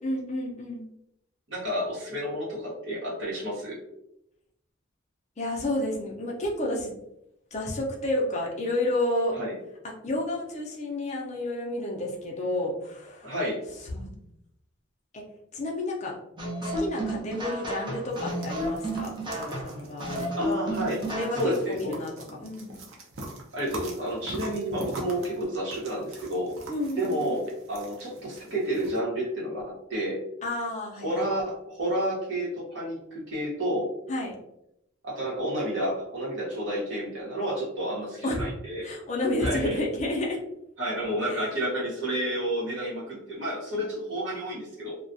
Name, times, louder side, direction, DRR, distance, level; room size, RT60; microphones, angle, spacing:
voice 1, 0.0-0.9 5.4-6.9 7.5-9.4 9.8-13.3 13.8-14.3 15.1-15.2 15.5-16.2 16.6-20.3 21.1-22.8 26.7-27.4 30.4-31.3 34.1-34.4 38.2-38.5 38.8-40.4 41.3-41.5, left 1 dB, 35° left, -1 dB, 0.5 m, -31 dB
voice 2, 1.5-3.8 9.3-9.6 13.2-13.6 20.4-21.0 21.4-21.9 23.5-26.5 27.0-29.6 29.9-30.2 31.0-33.9 35.0-38.8 39.4-39.8 40.8-45.0, right 1 dB, 60° right, -5 dB, 1.1 m, -30 dB
sound 1, 16.4-21.7, right 1 dB, 25° right, 0.5 m, -32 dB
sound 2, 18.1-29.0, right 2 dB, 80° right, 0.6 m, -44 dB
2.4 x 2.2 x 2.5 m, 0.81 s
head